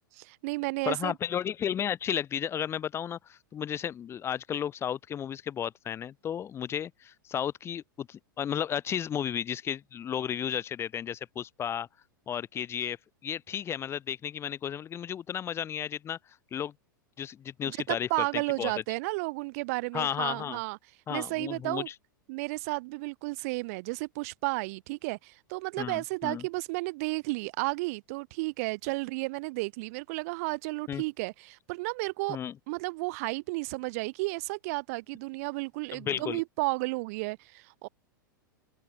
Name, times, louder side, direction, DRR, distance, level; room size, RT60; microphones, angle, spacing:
voice 1, 0.2-1.1 17.6-20.8 21.1-21.9 22.3-32.4 32.7-37.9, right 25 dB, 45° right, 0.7 m, -33 dB
voice 2, 0.8-11.9 12.3-13.0 13.2-16.2 16.5-16.7 17.2-18.7 19.9-20.6 21.1-21.9 25.8-26.4 30.9-31.0 32.3-32.5 35.9-36.4, left 9 dB, 25° left, 1.5 m, -33 dB
figure-of-eight pair, 95°, 11 cm